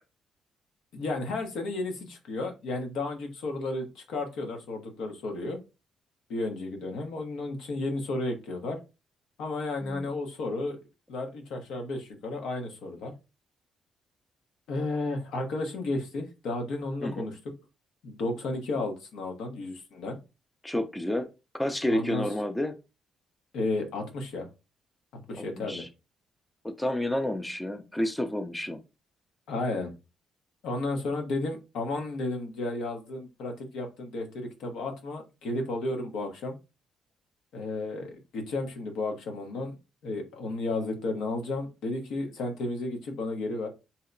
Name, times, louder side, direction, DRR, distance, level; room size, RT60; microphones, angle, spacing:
voice 1, 0.9-5.6 6.3-8.8 9.4-10.8 11.1-13.1 14.7-17.4 18.0-20.2 21.9-22.2 23.5-24.5 25.3-25.8 29.5-29.9 30.6-36.6 37.5-39.7 40.0-43.7, left 2 dB, 80° left, 0.8 m, -33 dB
voice 2, 20.6-21.3 21.6-22.7 25.4-25.9 26.6-28.8, left 1 dB, 10° left, 0.5 m, -30 dB
2.8 x 2.1 x 3.8 m
cardioid pair, 90°, 0 cm